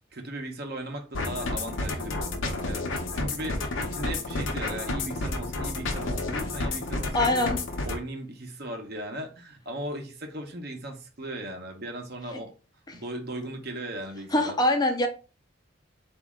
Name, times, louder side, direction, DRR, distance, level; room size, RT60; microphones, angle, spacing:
voice 1, 0.1-7.5 7.8-12.5 12.9-14.6, right 1 dB, 55° right, 0.9 m, -37 dB
sound 1, 1.1-8.0, left 2 dB, 75° left, 0.8 m, -31 dB
voice 2, 7.1-7.6 12.9-13.0 14.3-15.1, left 1 dB, 20° left, 0.5 m, -23 dB
4.1 x 2.7 x 3.6 m
head